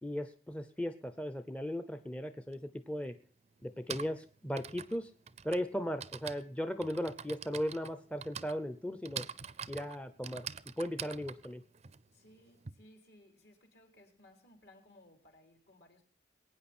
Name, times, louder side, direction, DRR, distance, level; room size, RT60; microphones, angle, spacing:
voice 1, 0.0-3.2 3.6-5.1 5.4-9.3 9.7-10.5 10.8-11.6, equal, 5° left, 0.6 m, -37 dB
Typing, 2.5-2.6 3.6-12.7, right 7 dB, 40° right, 0.5 m, -45 dB
voice 2, 12.1-16.0, left 1 dB, 65° left, 3.7 m, -61 dB
21.5 x 9.2 x 4.3 m
head